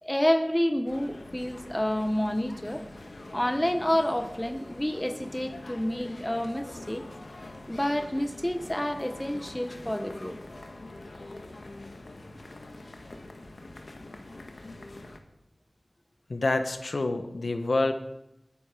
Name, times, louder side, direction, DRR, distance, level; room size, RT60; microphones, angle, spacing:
voice 1, 0.0-2.8 3.3-7.0 7.7-10.4, left 1 dB, 15° left, 10 dB, 1.1 m, -29 dB
sound 1, 0.9-15.2, left 2 dB, 70° left, 1.5 m, -44 dB
voice 2, 16.3-17.9, left 2 dB, 90° left, 8 dB, 1.2 m, -27 dB
20.0 x 10.5 x 5.1 m, 0.89 s
wide cardioid pair, 60°, 0 cm